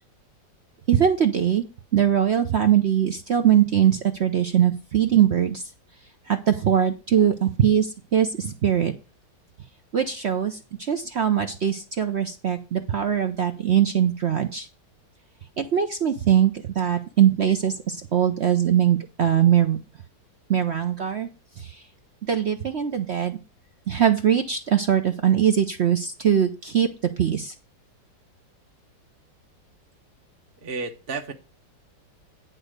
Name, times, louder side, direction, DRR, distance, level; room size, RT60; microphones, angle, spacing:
voice 1, 0.9-1.6 1.9-5.6 6.3-8.9 9.9-14.7 15.6-19.8 20.5-21.3 21.6-21.8 22.2-23.4 23.9-26.9 27.2-27.5, right 9 dB, 65° right, 0.6 m, -21 dB
voice 2, 30.6-31.3, right 4 dB, 40° right, 1.0 m, -32 dB
10.0 x 4.1 x 6.5 m
omnidirectional pair, 2.1 m